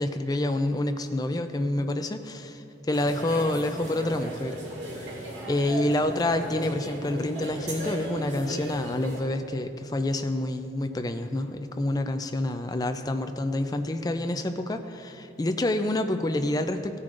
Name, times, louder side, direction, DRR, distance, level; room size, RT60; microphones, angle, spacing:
voice 1, 0.0-4.6 4.9-5.1 5.5-17.0, left 1 dB, 20° left, 7 dB, 0.4 m, -28 dB
sound 1, 2.9-9.2, right 1 dB, 70° right, 2.2 m, -37 dB
16.0 x 9.7 x 2.5 m, 2.8 s
head